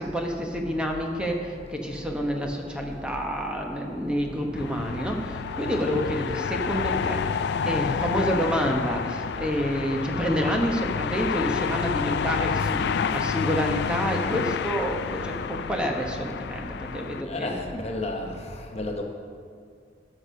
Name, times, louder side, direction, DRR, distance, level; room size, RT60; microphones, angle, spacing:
voice 1, 0.0-17.5, equal, 5° right, 1 dB, 1.0 m, -28 dB
sound 1, 4.6-17.2, left 6 dB, 60° left, 0.3 m, -29 dB
voice 2, 17.3-18.3 18.7-19.0, left 2 dB, 35° left, 2 dB, 0.9 m, -31 dB
13.5 x 6.4 x 5.6 m, 2.2 s
head